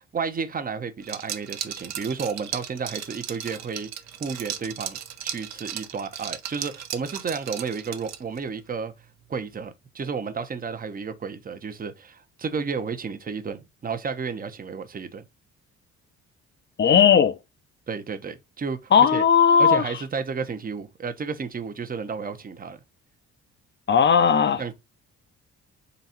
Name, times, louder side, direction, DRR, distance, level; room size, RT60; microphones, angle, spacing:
voice 1, 0.0-3.9 4.2-8.9 9.3-15.2 17.9-19.2 19.6-22.8 24.6-24.7, right 5 dB, 30° right, 0.7 m, -32 dB
Liquid, 1.0-8.4, right 9 dB, 60° right, 0.8 m, -36 dB
voice 2, 16.8-17.4 18.9-19.8 23.9-24.6, left 7 dB, 40° left, 0.6 m, -17 dB
4.0 x 2.4 x 4.2 m
cardioid pair, 90°, 30 cm